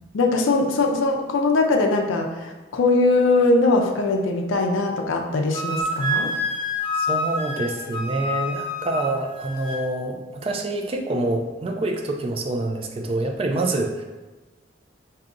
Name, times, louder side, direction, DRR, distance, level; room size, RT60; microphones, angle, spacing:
voice 1, 0.1-6.3, left 3 dB, 80° left, 2 dB, 0.4 m, -21 dB
Wind instrument woodwind instrument, 5.5-9.8, left 1 dB, 30° left, 0.6 m, -27 dB
voice 2, 6.9-14.0, right 2 dB, 30° right, 3 dB, 0.3 m, -26 dB
4.8 x 2.7 x 2.5 m, 1.2 s
head